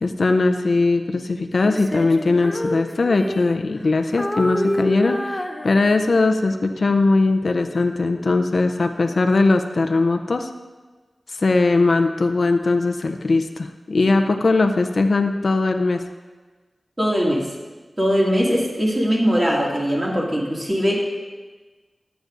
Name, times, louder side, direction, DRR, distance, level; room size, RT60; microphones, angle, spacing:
voice 1, 0.0-10.5 11.3-16.0, left 3 dB, 70° left, 6 dB, 0.5 m, -20 dB
Female singing, 1.6-3.9 4.2-6.2, left 1 dB, 15° left, 0.6 m, -28 dB
voice 2, 17.0-17.5 18.0-21.0, equal, 25° right, -4 dB, 2.1 m, -20 dB
14.5 x 9.1 x 2.5 m, 1.3 s
wide cardioid pair, 60°, 0 cm